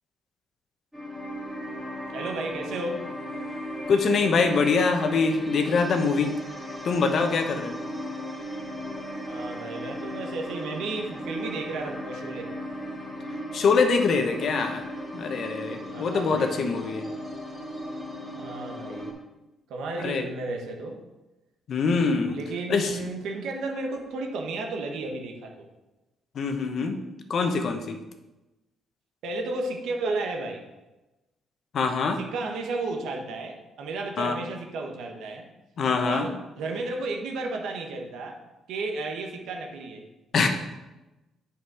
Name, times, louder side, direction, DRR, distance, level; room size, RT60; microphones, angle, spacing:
sound 1, 0.9-19.1, equal, 5° right, 2.3 m, -36 dB
voice 1, 2.1-3.0 9.3-12.5 15.9-16.5 18.4-19.1 19.7-21.0 22.3-25.7 29.2-30.6 32.2-35.5 36.0-38.4 38.7-40.0, right 3 dB, 80° right, 2 dB, 1.2 m, -33 dB
voice 2, 3.9-6.3 6.8-7.8 13.5-14.8 15.1-17.1 20.0-20.2 21.7-22.4 22.7-22.9 26.3-27.0 27.3-28.0 31.7-32.2 34.2-34.4 35.8-36.3 40.3-40.5, left 4 dB, 60° left, 5 dB, 1.0 m, -24 dB
7.8 x 5.2 x 4.9 m, 1.0 s
cardioid pair, 90°, 0 cm